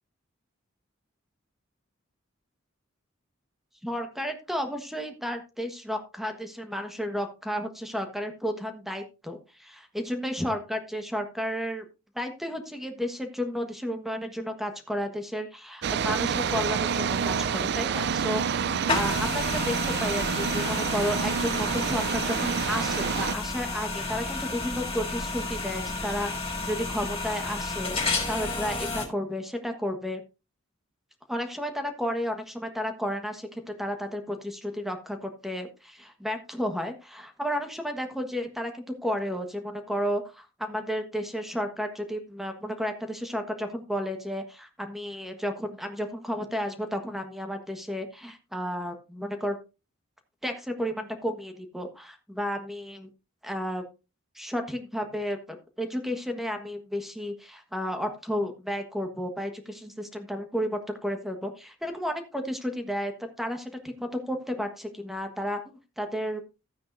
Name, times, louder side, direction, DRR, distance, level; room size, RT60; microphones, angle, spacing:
voice 1, 3.8-11.8 12.1-30.2 31.3-49.6 50.4-53.1 53.4-53.8 54.3-66.4, equal, ahead, 6 dB, 1.3 m, -32 dB
sound 1, 15.8-23.3, right 6 dB, 55° right, 0.4 m, -28 dB
sound 2, 18.9-29.1, left 3 dB, 30° left, 3.4 m, -31 dB
13.5 x 9.3 x 2.6 m, 0.29 s
head